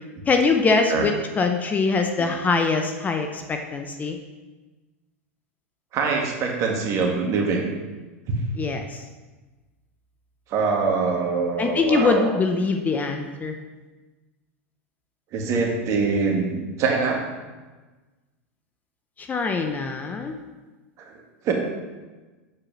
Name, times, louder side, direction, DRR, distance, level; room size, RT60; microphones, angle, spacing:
voice 1, 0.3-4.2 8.6-9.0 11.6-13.5 19.2-20.3, left 4 dB, 20° left, 5 dB, 0.7 m, -23 dB
voice 2, 5.9-7.7 10.5-12.3 15.3-17.2 21.0-21.2 21.4-21.5, right 4 dB, 45° right, 1 dB, 1.8 m, -24 dB
7.6 x 4.8 x 6.0 m, 1.2 s
hypercardioid pair, 105°, 8 cm